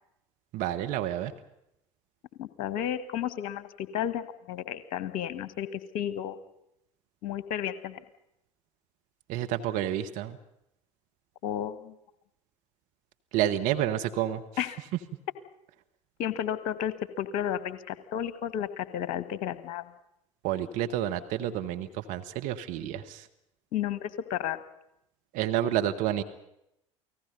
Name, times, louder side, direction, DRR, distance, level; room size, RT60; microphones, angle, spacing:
voice 1, 0.5-1.3 9.3-10.4 13.3-14.4 20.4-23.2 25.3-26.2, right 12 dB, 55° right, 6 dB, 1.4 m, -29 dB
voice 2, 2.4-6.4 7.2-8.0 11.4-11.9 14.6-14.8 16.2-19.8 23.7-24.6, left 10 dB, 55° left, 14 dB, 1.4 m, -32 dB
29.0 x 18.5 x 5.4 m, 0.83 s
figure-of-eight pair, 65°, 17 cm